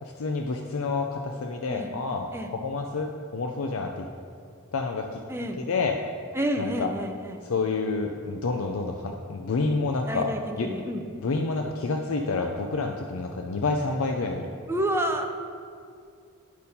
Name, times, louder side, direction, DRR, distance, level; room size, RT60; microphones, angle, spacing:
voice 1, 0.0-4.1 4.7-5.2 5.6-6.0 6.6-6.9 7.5-10.3 10.6-10.7 11.2-14.5, left 3 dB, 65° left, 3 dB, 0.5 m, -28 dB
voice 2, 5.3-5.6 6.3-7.4 10.1-11.0 14.7-15.3, right 1 dB, 10° right, 3 dB, 0.6 m, -29 dB
10.0 x 4.4 x 5.3 m, 2.3 s
head